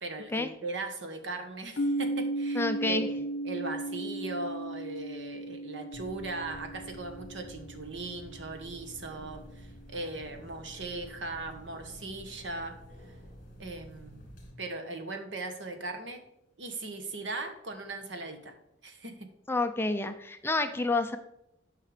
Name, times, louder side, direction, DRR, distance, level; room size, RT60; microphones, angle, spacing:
voice 1, 0.0-12.8 13.6-14.2 14.6-16.2 16.6-18.5 18.8-19.3, right 2 dB, 70° right, 6 dB, 1.4 m, -39 dB
sound 1, 1.8-9.6, right 1 dB, 65° left, 1.1 m, -36 dB
voice 2, 2.6-3.1 19.5-21.2, left 2 dB, 10° left, 8 dB, 0.5 m, -29 dB
sound 2, 5.9-14.5, equal, 45° left, 2.7 m, -50 dB
9.4 x 5.7 x 5.1 m, 0.82 s
head